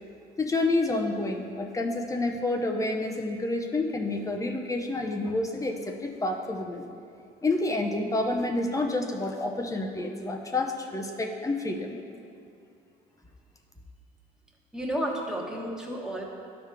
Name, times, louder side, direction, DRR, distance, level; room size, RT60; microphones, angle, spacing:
voice 1, 0.4-6.8 7.4-12.0, left 2 dB, 20° left, 2 dB, 0.7 m, -29 dB
voice 2, 14.7-16.2, right 1 dB, 5° right, -2 dB, 1.3 m, -31 dB
12.5 x 4.9 x 3.4 m, 2.5 s
cardioid pair, 110°, 17 cm